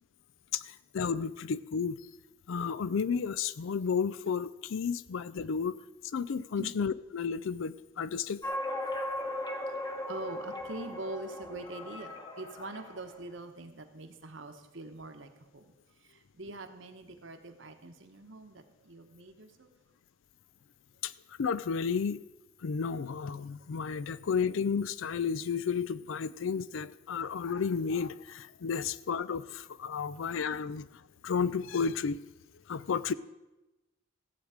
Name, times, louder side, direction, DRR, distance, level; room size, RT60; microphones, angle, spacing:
voice 1, 0.5-2.0 2.5-5.8 6.1-8.4 21.0-21.1 21.4-22.2 22.6-30.9 31.2-32.2 32.7-33.1, left 6 dB, 70° left, 17 dB, 0.4 m, -32 dB
sound 1, 8.4-13.2, left 1 dB, 20° left, 1.0 m, -38 dB
voice 2, 10.1-15.7 16.0-19.7, right 2 dB, 65° right, 6 dB, 1.2 m, -44 dB
15.5 x 8.0 x 5.0 m, 1.0 s
head